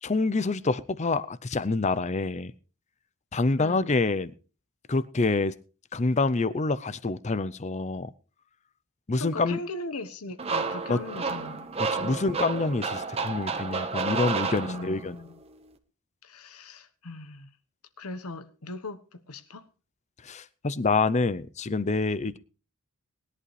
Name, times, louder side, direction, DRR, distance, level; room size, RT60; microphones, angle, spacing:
voice 1, 0.0-2.5 3.3-4.3 4.9-5.5 5.9-8.1 9.1-9.6 10.9-11.0 11.8-15.1 20.2-22.4, left 3 dB, 30° left, 0.6 m, -27 dB
voice 2, 3.6-3.9 9.2-11.7 12.0-12.2 14.7-15.4 16.2-17.5 18.0-19.7, left 2 dB, 90° left, 1.2 m, -39 dB
sound 1, 10.4-15.2, right 4 dB, 30° right, 1.2 m, -31 dB
20.0 x 11.0 x 3.3 m
head